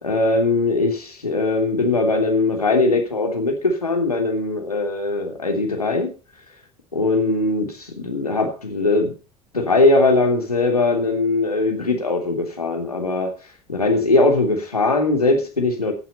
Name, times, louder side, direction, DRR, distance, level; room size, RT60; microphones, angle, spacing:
voice 1, 0.0-6.1 6.9-9.1 9.5-13.3 13.7-15.9, left 2 dB, 85° left, 2 dB, 3.1 m, -20 dB
16.5 x 9.1 x 4.2 m, 0.32 s
figure-of-eight pair, 65°, 19 cm